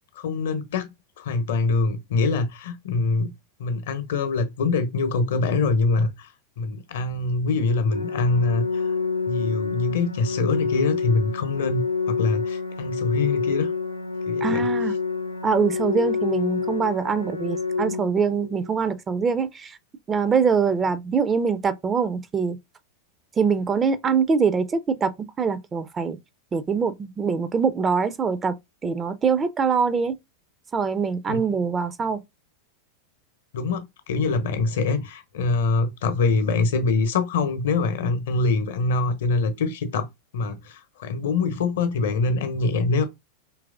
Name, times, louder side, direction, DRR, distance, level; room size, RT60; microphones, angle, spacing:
voice 1, 0.2-0.9 1.2-3.3 3.6-6.3 6.6-8.9 9.3-13.7 14.3-14.7 31.3-31.4 33.5-40.1 40.3-43.0, left 3 dB, 60° left, 0.8 m, -24 dB
Organ, 7.9-18.9, left 5 dB, 85° left, 0.7 m, -27 dB
voice 2, 14.4-14.9 15.4-19.8 20.1-22.6 23.4-25.1 25.4-26.2 26.5-28.5 28.8-30.2 30.7-32.2, right 5 dB, 20° right, 0.4 m, -23 dB
4.6 x 3.1 x 2.4 m
figure-of-eight pair, 90°, 0 cm